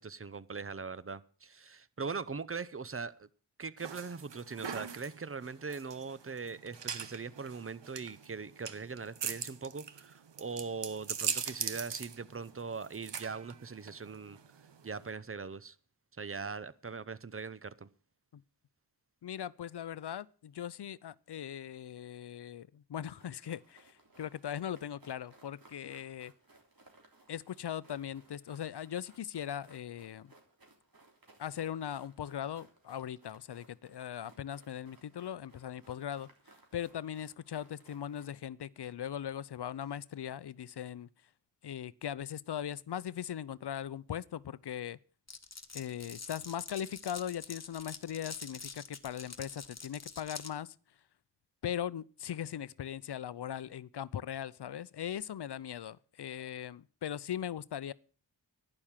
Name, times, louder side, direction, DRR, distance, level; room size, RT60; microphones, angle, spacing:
voice 1, 0.0-3.3 3.6-14.4 14.8-15.8 16.2-17.9, right 5 dB, 30° right, 0.8 m, -41 dB
sound 1, 3.8-15.1, right 7 dB, 75° right, 1.1 m, -41 dB
voice 2, 19.2-26.3 27.3-30.3 31.4-36.3 36.7-41.1 41.6-45.0 45.7-50.8 51.6-57.9, left 10 dB, 70° left, 0.6 m, -39 dB
sound 2, 23.2-38.3, right 2 dB, 50° right, 3.5 m, -63 dB
Glass, 45.3-50.5, left 4 dB, 35° left, 1.4 m, -46 dB
11.5 x 9.8 x 7.4 m
wide cardioid pair, 65°, 43 cm